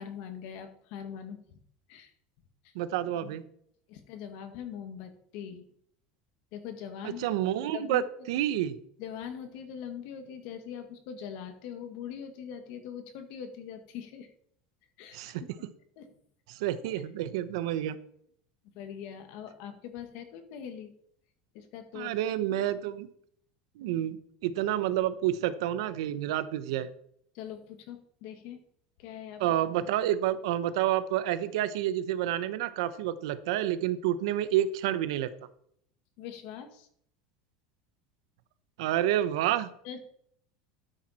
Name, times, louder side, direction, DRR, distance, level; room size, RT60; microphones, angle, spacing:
voice 1, 0.0-1.6 1.9-2.1 2.6-2.7 3.2-3.4 3.9-5.7 6.5-7.2 7.7-8.3 9.0-14.3 15.0-15.3 16.0-16.1 18.8-20.9 21.5-22.1 27.3-28.6 29.0-29.4 36.2-36.9 39.8-40.1, left 8 dB, 50° left, 8 dB, 1.8 m, -42 dB
voice 2, 2.7-3.4 7.2-8.0 8.3-8.8 15.1-15.4 16.5-18.0 21.9-23.1 23.8-26.9 29.4-35.3 38.8-39.7, right 12 dB, 75° right, 13 dB, 1.0 m, -29 dB
13.5 x 9.2 x 4.3 m, 0.66 s
cardioid pair, 175°, 3 cm